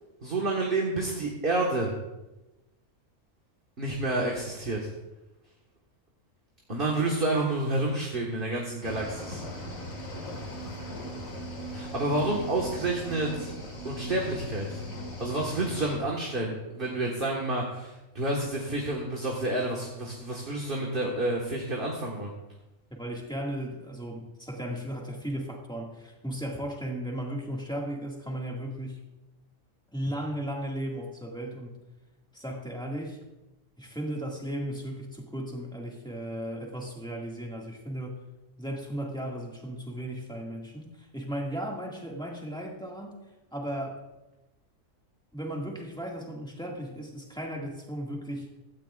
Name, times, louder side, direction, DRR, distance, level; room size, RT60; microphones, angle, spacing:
voice 1, 0.2-1.9 3.8-4.8 6.7-9.4 11.7-13.5 13.8-14.8 15.2-22.3, right 2 dB, 40° right, -2 dB, 1.8 m, -29 dB
Cricket / Waves surf, 8.8-16.0, equal, 80° left, 2.5 m, -38 dB
voice 2, 22.9-29.0 29.9-31.8 32.3-33.2 33.8-38.2 38.6-43.2 43.5-44.0 45.3-48.5, equal, 5° left, -1 dB, 2.0 m, -35 dB
16.0 x 13.5 x 2.5 m, 1.0 s
omnidirectional pair, 1.4 m